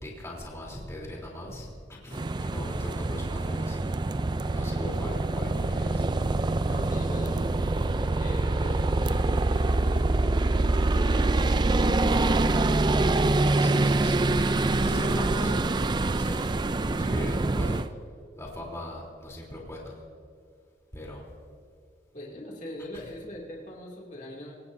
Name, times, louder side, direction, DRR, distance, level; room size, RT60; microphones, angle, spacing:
voice 1, 0.0-1.7 2.0-3.8 4.5-6.1 13.6-15.7 16.1-16.5 16.8-17.8 18.4-20.0 20.9-21.2, left 1 dB, 15° left, -3 dB, 3.4 m, -39 dB
sound 1, 2.1-17.9, right 2 dB, 25° right, 0.4 m, -25 dB
voice 2, 6.6-7.7 8.0-13.4 14.8-15.2 22.1-24.6, left 1 dB, 40° left, -3 dB, 2.6 m, -42 dB
26.5 x 17.0 x 2.7 m, 2.2 s
head